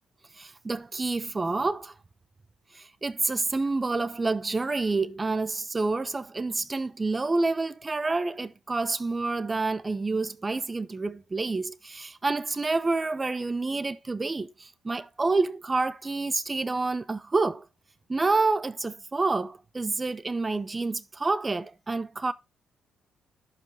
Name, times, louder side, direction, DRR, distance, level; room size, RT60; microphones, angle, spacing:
voice 1, 0.4-1.9 2.7-17.6 18.1-22.3, right 3 dB, 25° right, 0.7 m, -28 dB
11.0 x 5.1 x 3.4 m
cardioid pair, 90°, 0 cm